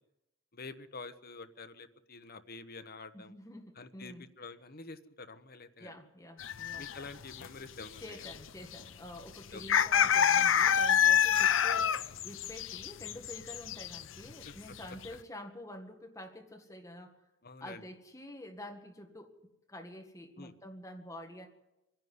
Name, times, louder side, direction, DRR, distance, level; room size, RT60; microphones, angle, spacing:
voice 1, 0.5-3.3 3.8-5.9 6.8-8.0 9.5-9.9 14.5-14.6 17.4-17.8 20.4-20.5, left 3 dB, 50° left, 10 dB, 1.1 m, -47 dB
voice 2, 3.1-4.3 5.8-6.9 8.0-17.2 17.6-19.3 19.7-21.5, left 1 dB, 15° left, 3 dB, 1.9 m, -48 dB
sound 1, 6.4-7.1 7.3-7.5 7.8-8.4 8.6-8.8 9.6-14.0 14.3-14.5 14.8-15.1, left 8 dB, 80° left, 0.6 m, -27 dB
25.5 x 10.5 x 9.6 m, 0.94 s
head